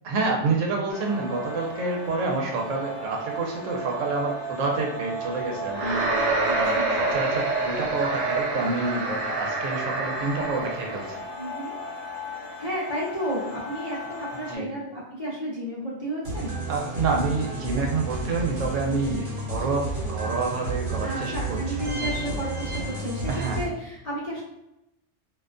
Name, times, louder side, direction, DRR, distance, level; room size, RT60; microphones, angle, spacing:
voice 1, 0.0-11.2 14.5-14.7 16.7-21.8 23.3-23.6, right 3 dB, 90° right, 0 dB, 1.0 m, -28 dB
sound 1, 0.9-14.6, right 1 dB, 70° left, 0.8 m, -36 dB
sound 2, 5.7-11.1, right 3 dB, 50° right, 0.5 m, -27 dB
voice 2, 6.4-6.9 11.4-11.8 12.6-16.6 21.0-23.2 23.6-24.4, right 1 dB, 45° left, -7 dB, 0.5 m, -32 dB
sound 3, 16.3-23.6, right 2 dB, 65° right, 1.0 m, -31 dB
2.5 x 2.2 x 2.4 m, 0.89 s
omnidirectional pair, 1.3 m